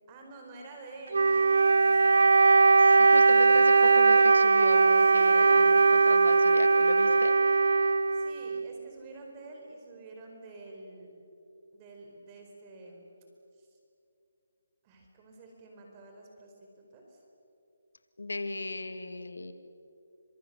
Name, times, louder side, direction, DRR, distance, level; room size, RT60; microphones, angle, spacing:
voice 1, 0.1-2.4 5.1-5.7 8.1-11.1 11.7-13.1 13.6-13.7 14.8-17.2, right 2 dB, 25° right, 1 dB, 4.5 m, -48 dB
Wind instrument woodwind instrument, 1.1-8.7, right 4 dB, 70° right, 0.7 m, -20 dB
voice 2, 2.8-7.3 18.2-19.5, left 2 dB, 85° left, 9 dB, 2.3 m, -35 dB
29.5 x 26.0 x 6.9 m, 2.6 s
figure-of-eight pair, 155°, 0 cm